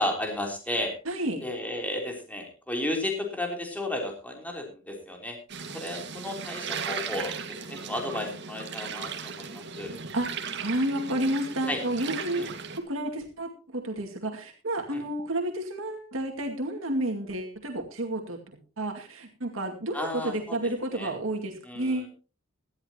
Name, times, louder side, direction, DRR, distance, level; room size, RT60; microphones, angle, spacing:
voice 1, 0.0-0.9 1.4-5.4 5.7-9.9 11.7-11.8 12.3-12.5 14.9-15.0 19.9-20.6 20.9-21.1 21.6-22.0, left 1 dB, 10° left, 2 dB, 3.4 m, -33 dB
voice 2, 1.1-1.4 10.1-12.5 12.8-18.4 18.8-22.1, right 1 dB, 90° right, 3 dB, 2.3 m, -31 dB
sound 1, 5.5-12.8, right 6 dB, 60° right, 1.9 m, -37 dB
17.5 x 13.0 x 2.9 m, 0.33 s
head